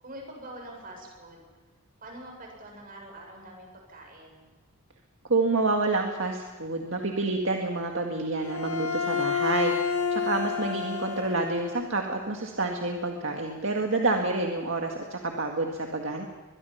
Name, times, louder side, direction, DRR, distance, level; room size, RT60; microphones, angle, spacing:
voice 1, 0.0-1.5 2.0-4.5 10.5-10.7, right 1 dB, 40° right, 1 dB, 7.5 m, -45 dB
voice 2, 5.3-9.7 10.1-16.3, right 3 dB, 60° right, 2 dB, 2.0 m, -28 dB
Bowed string instrument, 8.4-11.9, left 6 dB, 85° left, 2.0 m, -29 dB
23.0 x 22.0 x 5.8 m, 1.4 s
head